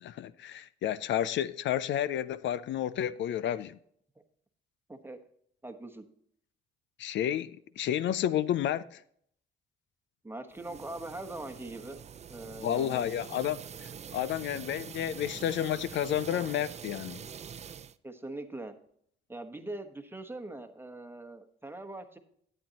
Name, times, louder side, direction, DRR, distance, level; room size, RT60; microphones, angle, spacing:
voice 1, 0.0-3.8 7.0-9.0 12.6-17.2, left 11 dB, 70° left, 0.4 m, -31 dB
voice 2, 5.6-6.0 10.2-12.0 12.3-13.1 18.0-18.7 19.3-22.2, right 2 dB, 10° right, 1.1 m, -41 dB
sound 1, 10.5-18.0, right 7 dB, 35° right, 0.4 m, -45 dB
12.0 x 8.8 x 2.9 m
cardioid pair, 90°, 20 cm